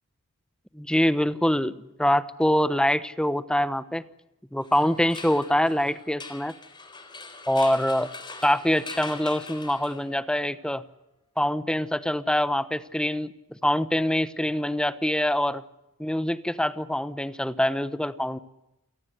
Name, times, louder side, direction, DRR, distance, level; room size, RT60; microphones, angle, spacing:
voice 1, 0.7-4.0 4.5-6.5 7.5-8.1 8.4-10.8 11.4-13.3 13.6-15.6 16.0-18.4, left 1 dB, 5° left, 13 dB, 1.0 m, -24 dB
sound 1, 4.6-10.3, left 3 dB, 20° left, 3.8 m, -42 dB
29.0 x 18.0 x 8.2 m, 0.89 s
head